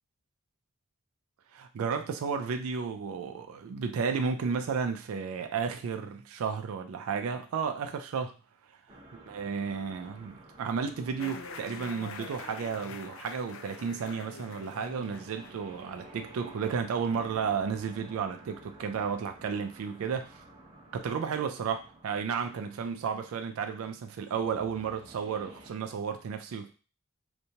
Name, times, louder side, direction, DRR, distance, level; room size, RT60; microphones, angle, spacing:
voice 1, 1.5-8.3 9.3-20.4 20.9-26.7, right 6 dB, 80° right, 6 dB, 0.3 m, -33 dB
sound 1, 8.9-25.7, right 1 dB, 25° right, 0.6 m, -53 dB
sound 2, 11.2-16.8, left 4 dB, 65° left, 0.3 m, -46 dB
2.7 x 2.2 x 2.7 m, 0.35 s
head